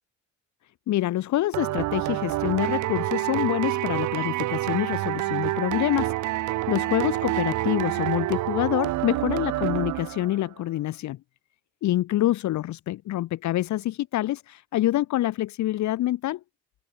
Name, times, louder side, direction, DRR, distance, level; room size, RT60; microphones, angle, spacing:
voice 1, 0.9-6.2 6.7-11.2 11.8-16.4, left 14 dB, 70° left, 0.8 m, -26 dB
sound 1, 1.5-10.4, right 17 dB, 75° right, 0.6 m, -27 dB
cardioid pair, 90°, 30 cm